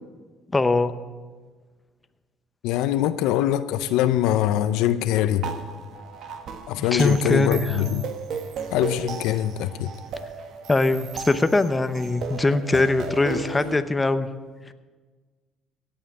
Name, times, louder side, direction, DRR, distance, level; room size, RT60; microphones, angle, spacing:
voice 1, 0.5-1.0 6.8-7.8 10.7-14.3, left 2 dB, 20° left, 0.8 m, -22 dB
voice 2, 2.6-5.5 6.7-8.0 8.7-9.9, left 12 dB, 80° left, 0.6 m, -23 dB
sound 1, 5.4-13.8, right 5 dB, 65° right, 1.4 m, -35 dB
17.0 x 5.7 x 8.6 m
supercardioid pair, 85°, 0 cm